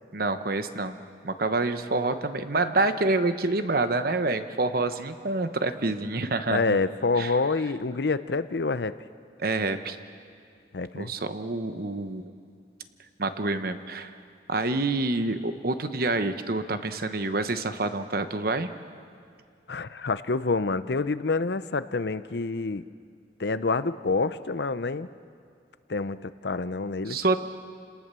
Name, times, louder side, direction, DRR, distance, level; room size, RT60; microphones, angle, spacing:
voice 1, 0.1-1.0 1.2-6.8 7.2-7.3 9.4-10.0 11.0-12.3 13.2-14.1 14.5-18.7 27.1-27.4, right 2 dB, 55° right, 9 dB, 1.1 m, -27 dB
voice 2, 6.5-9.0 10.7-11.1 19.7-22.8 23.4-25.1 25.9-27.2, left 3 dB, 65° left, 13 dB, 0.7 m, -27 dB
29.0 x 18.5 x 6.9 m, 2.3 s
head